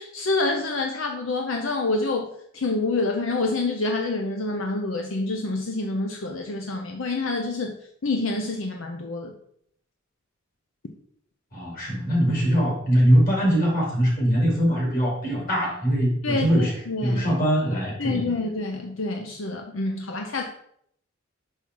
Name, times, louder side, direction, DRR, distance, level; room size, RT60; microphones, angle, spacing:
voice 1, 0.0-2.3 2.5-7.7 8.0-9.3 16.2-17.2 18.0-20.4, left 3 dB, 80° left, 3 dB, 0.7 m, -27 dB
voice 2, 11.5-16.7 17.0-18.3, equal, 45° left, -2 dB, 2.9 m, -22 dB
5.7 x 5.5 x 4.6 m, 0.69 s
head